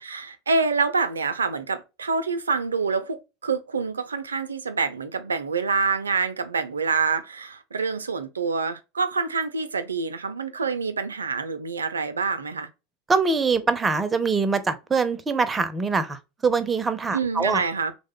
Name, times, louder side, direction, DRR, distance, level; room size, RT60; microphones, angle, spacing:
voice 1, 0.0-3.2 3.4-12.7 17.1-17.9, right 4 dB, 85° right, 0.4 m, -26 dB
voice 2, 13.1-17.6, right 4 dB, 20° right, 0.5 m, -23 dB
3.0 x 2.1 x 3.7 m
hypercardioid pair, 85°, 0 cm